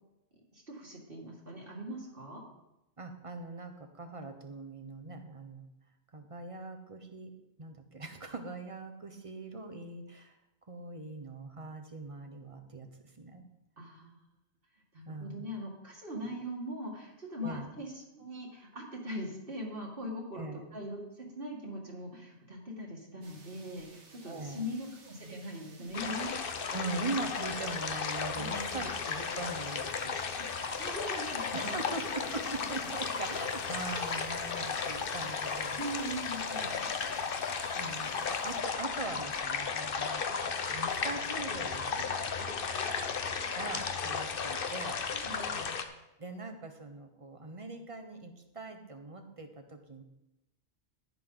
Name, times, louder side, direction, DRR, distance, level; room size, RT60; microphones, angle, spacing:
voice 1, 0.5-2.4 13.8-14.2 14.9-26.4 28.4-28.9 30.3-31.9 35.8-36.9 42.4-43.4 45.1-45.7, equal, 50° right, -2 dB, 2.1 m, -41 dB
voice 2, 3.0-5.7 6.1-7.3 7.6-10.4 10.7-13.4 15.1-15.3 17.4-17.7 20.3-20.6 24.2-24.7 26.7-30.8 31.5-35.8 36.4-36.9 37.7-42.0 43.5-45.0 46.2-50.0, right 3 dB, 30° right, 5 dB, 1.1 m, -41 dB
sound 1, 23.2-38.6, right 3 dB, 75° right, 1.7 m, -57 dB
sound 2, 25.9-45.8, left 5 dB, 55° left, 1.0 m, -35 dB
sound 3, 31.2-36.2, left 1 dB, 85° left, 2.8 m, -60 dB
11.0 x 11.0 x 4.0 m, 0.91 s
omnidirectional pair, 1.2 m